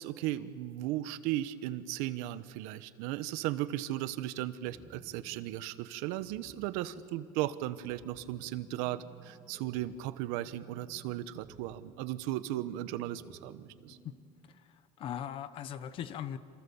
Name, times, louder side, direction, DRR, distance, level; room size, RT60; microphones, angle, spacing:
voice 1, 0.0-14.0, right 14 dB, 80° right, 13 dB, 1.2 m, -36 dB
sound 1, 4.6-14.6, right 3 dB, 15° right, 4.1 m, -57 dB
voice 2, 15.0-16.4, left 9 dB, 40° left, 12 dB, 1.2 m, -39 dB
28.0 x 27.5 x 7.2 m, 2.2 s
cardioid pair, 160°, 13 cm